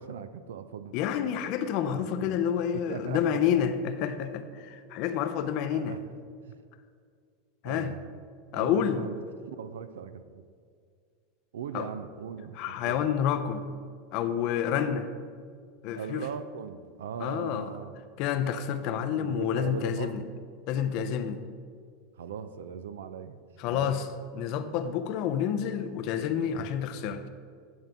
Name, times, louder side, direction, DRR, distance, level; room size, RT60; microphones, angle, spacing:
voice 1, 0.0-1.0 1.8-2.4 2.7-3.4 5.5-6.0 6.5-6.6 7.6-8.0 8.5-10.4 11.5-13.0 16.0-18.0 19.2-20.3 22.2-23.4 23.7-24.0, right 7 dB, 75° right, 11 dB, 0.4 m, -39 dB
voice 2, 0.9-5.9 7.6-7.9 8.5-9.0 11.7-11.9 12.6-13.6 14.1-15.1 15.8-16.2 17.2-17.7 18.2-20.3 20.7-21.4 23.6-24.1 24.3-27.3, left 8 dB, 55° left, 10 dB, 0.5 m, -29 dB
9.5 x 3.8 x 6.0 m, 2.1 s
hypercardioid pair, 90°, 0 cm